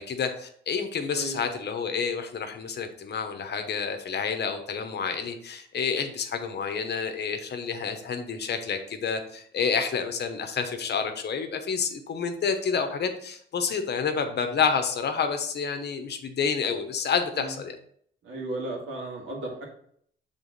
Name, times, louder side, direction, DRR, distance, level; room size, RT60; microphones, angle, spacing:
voice 1, 0.0-17.7, left 6 dB, 60° left, 7 dB, 0.9 m, -29 dB
voice 2, 18.2-19.6, right 2 dB, 75° right, -1 dB, 2.0 m, -35 dB
6.9 x 3.7 x 4.0 m, 0.64 s
cardioid pair, 105°, 20 cm